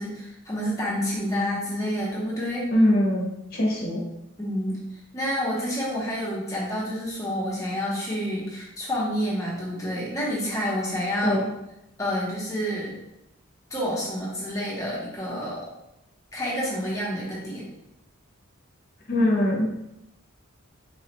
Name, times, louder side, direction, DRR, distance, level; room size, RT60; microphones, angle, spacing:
voice 1, 0.0-2.7 4.4-4.8 5.1-11.4 12.0-12.9 13.7-15.6 16.3-17.6, equal, 15° left, -5 dB, 0.9 m, -28 dB
voice 2, 2.7-4.0 11.2-11.5 19.1-19.8, left 1 dB, 45° left, -2 dB, 0.8 m, -22 dB
4.0 x 2.4 x 2.9 m, 0.87 s
head